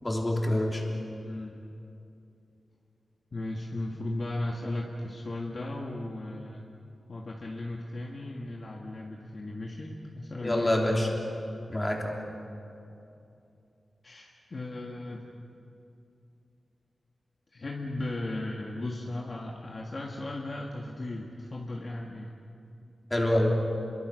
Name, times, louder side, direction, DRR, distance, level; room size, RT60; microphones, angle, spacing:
voice 1, 0.0-0.8 10.4-11.1 11.7-12.1 23.1-23.6, left 1 dB, 15° left, -1 dB, 3.4 m, -26 dB
voice 2, 1.2-1.5 3.3-6.6 7.1-11.1 14.0-15.4 17.5-22.4, left 2 dB, 40° left, -1 dB, 1.7 m, -36 dB
30.0 x 23.0 x 6.5 m, 2.7 s
wide cardioid pair, 165°, 0 cm